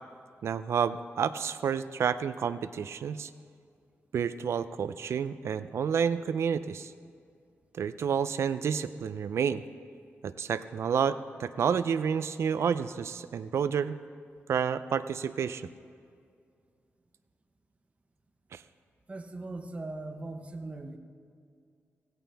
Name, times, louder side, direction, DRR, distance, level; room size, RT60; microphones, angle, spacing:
voice 1, 0.4-3.3 4.1-6.9 7.7-9.6 10.2-14.0 14.5-15.7 18.5-18.6, right 7 dB, 75° right, 13 dB, 0.5 m, -30 dB
voice 2, 19.1-21.0, right 2 dB, 30° right, 6 dB, 1.0 m, -39 dB
17.0 x 16.0 x 3.5 m, 2.3 s
wide cardioid pair, 120°, 5 cm